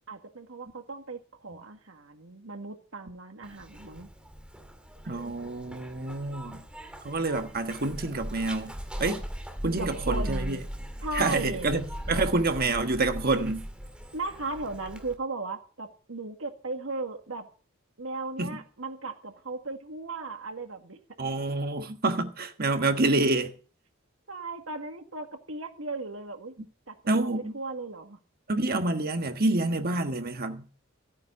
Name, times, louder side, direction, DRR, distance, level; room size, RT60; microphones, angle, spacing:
voice 1, 0.1-4.1 9.7-10.6 11.0-11.7 14.1-17.5 18.0-21.0 24.3-26.6 26.9-27.0 27.2-28.2, right 3 dB, 75° right, 1.9 m, -36 dB
Zipper (clothing), 3.4-15.2, equal, 5° right, 2.1 m, -39 dB
voice 2, 5.0-6.6 7.0-8.7 9.0-9.2 9.6-10.6 11.1-13.6 18.4-18.6 21.2-23.5 27.1-27.5 28.5-30.6, right 2 dB, 50° right, 1.4 m, -27 dB
14.0 x 9.1 x 5.6 m
head